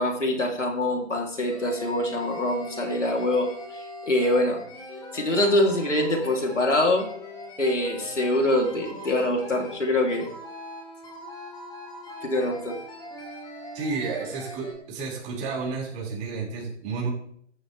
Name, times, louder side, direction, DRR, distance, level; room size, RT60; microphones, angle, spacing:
voice 1, 0.0-4.6 5.1-7.1 7.6-10.3 12.2-12.8, left 1 dB, 90° left, 2 dB, 3.8 m, -24 dB
sound 1, 1.5-14.7, left 1 dB, 10° left, 3.5 m, -41 dB
voice 2, 13.7-17.1, right 4 dB, 20° right, -3 dB, 6.0 m, -31 dB
14.5 x 12.5 x 3.6 m, 0.64 s
figure-of-eight pair, 140°, 35 cm